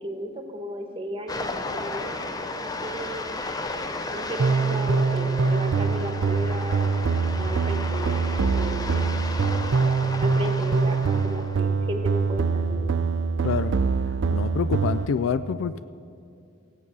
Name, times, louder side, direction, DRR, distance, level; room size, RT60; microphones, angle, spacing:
voice 1, 0.0-3.4 4.1-9.0 10.2-12.9, equal, 25° right, 5 dB, 1.2 m, -35 dB
sound 1, 1.3-11.6, left 2 dB, 20° left, 0.6 m, -34 dB
sound 2, 4.4-15.1, right 4 dB, 60° right, 0.4 m, -24 dB
voice 2, 13.4-13.8 14.3-15.8, left 6 dB, 70° left, 13 dB, 0.3 m, -27 dB
16.0 x 8.4 x 6.1 m, 2.4 s
head